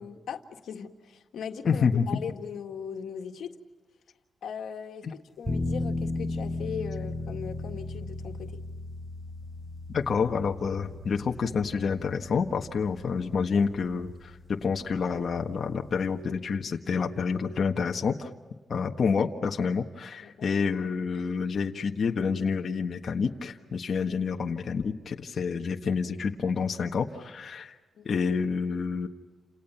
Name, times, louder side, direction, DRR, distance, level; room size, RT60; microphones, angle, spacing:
voice 1, 0.0-3.6 4.4-8.6 20.2-20.3 27.9-28.1, left 7 dB, 90° left, 5 dB, 1.9 m, -39 dB
voice 2, 1.6-2.1 5.0-5.1 9.9-18.3 18.7-27.7 28.0-29.1, left 5 dB, 55° left, 3 dB, 1.5 m, -28 dB
sound 1, 5.4-16.2, left 2 dB, 5° right, 6.9 m, -37 dB
29.5 x 28.0 x 5.8 m, 1.3 s
wide cardioid pair, 120°, 0 cm